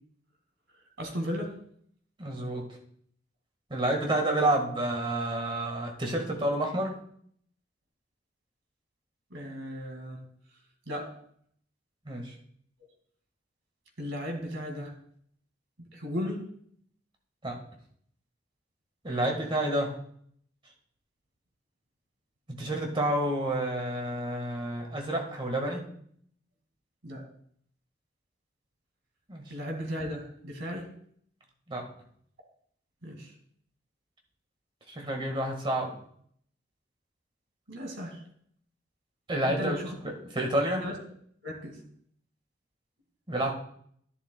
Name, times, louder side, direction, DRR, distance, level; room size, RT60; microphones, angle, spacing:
voice 1, 1.0-1.6 4.4-4.5 9.3-10.2 10.9-11.1 14.0-15.0 15.8-16.5 19.2-19.4 27.0-27.3 29.5-30.9 33.0-33.3 37.7-38.2 39.5-40.0 40.8-41.0 41.4-41.8, equal, 85° right, 2 dB, 2.1 m, -36 dB
voice 2, 2.2-2.8 3.7-7.0 12.0-12.3 17.4-17.6 19.0-20.0 22.6-25.8 29.3-29.5 31.7-31.9 34.9-35.9 39.3-40.8 43.3-43.5, right 1 dB, 25° right, 2 dB, 1.6 m, -29 dB
11.0 x 11.0 x 2.3 m, 0.64 s
head